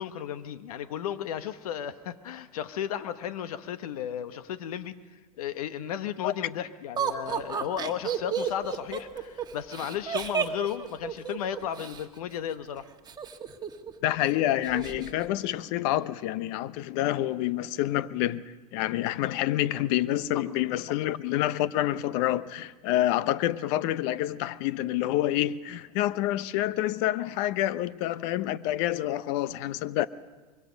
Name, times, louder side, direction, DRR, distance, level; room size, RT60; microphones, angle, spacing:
voice 1, 0.0-4.9 5.4-12.9, left 9 dB, 70° left, 1.2 m, -34 dB
Laughter, 7.0-12.0 13.1-13.9 14.2-14.3 14.7-15.1, right 7 dB, 20° right, 1.7 m, -32 dB
voice 2, 14.0-18.4 18.7-30.1, left 14 dB, 55° left, 0.8 m, -27 dB
25.0 x 22.5 x 5.2 m
hypercardioid pair, 95°, 19 cm